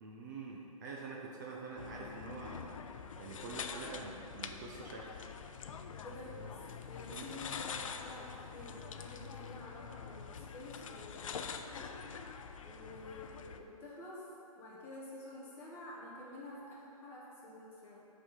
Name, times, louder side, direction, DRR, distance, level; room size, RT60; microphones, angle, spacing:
voice 1, 0.0-2.7 3.2-5.1 7.1-7.3, right 4 dB, 30° right, -2 dB, 0.6 m, -46 dB
sound 1, 1.8-13.6, left 6 dB, 60° left, 0.5 m, -45 dB
voice 2, 5.7-11.9 12.6-14.2 14.5-18.1, left 1 dB, 10° left, -6 dB, 1.0 m, -50 dB
7.8 x 4.2 x 5.5 m, 2.8 s
hypercardioid pair, 165°, 19 cm